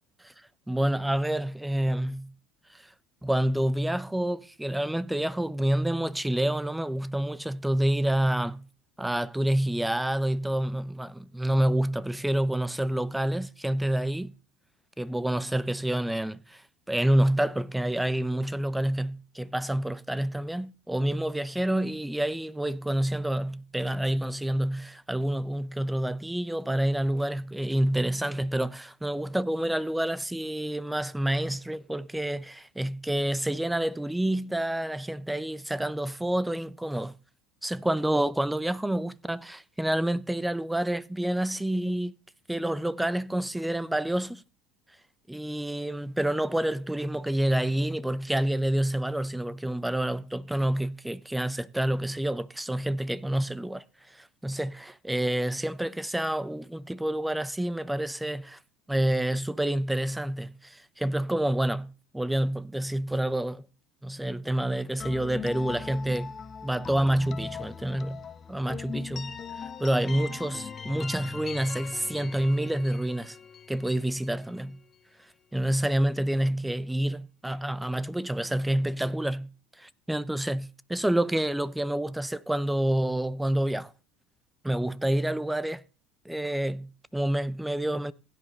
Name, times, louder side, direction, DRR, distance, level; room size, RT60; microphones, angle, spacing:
voice 1, 0.7-2.3 2.7-2.8 3.2-8.7 9.0-14.3 15.0-16.6 16.9-37.1 37.6-42.1 42.5-44.4 45.3-53.8 54.1-58.6 58.9-63.6 64.0-66.3 66.6-68.2 68.5-73.4 73.7-74.8 75.5-79.5 79.8-83.9 84.6-85.8 86.2-88.1, right 1 dB, 5° right, 0.6 m, -28 dB
sound 1, 65.0-74.8, left 6 dB, 35° left, 1.2 m, -40 dB
16.0 x 10.5 x 3.3 m
hypercardioid pair, 85°, 0 cm